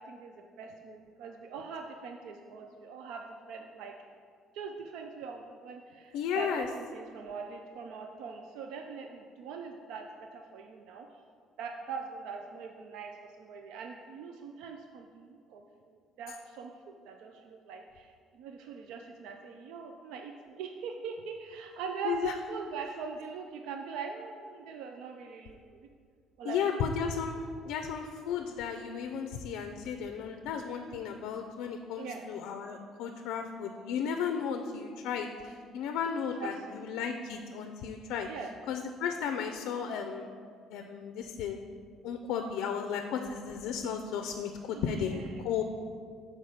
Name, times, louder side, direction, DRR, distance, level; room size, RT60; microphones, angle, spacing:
voice 1, 0.0-3.9 4.5-11.2 11.6-25.9 26.4-26.9 32.0-32.2 36.4-36.8 38.3-38.5 44.7-45.3, right 5 dB, 80° right, 4 dB, 0.4 m, -42 dB
voice 2, 6.1-6.7 22.0-22.3 26.4-27.4 27.7-38.3 38.7-40.2 40.7-41.6 42.0-45.6, left 7 dB, 70° left, 5 dB, 0.4 m, -34 dB
6.6 x 4.7 x 5.5 m, 2.1 s
cardioid pair, 175°, 0 cm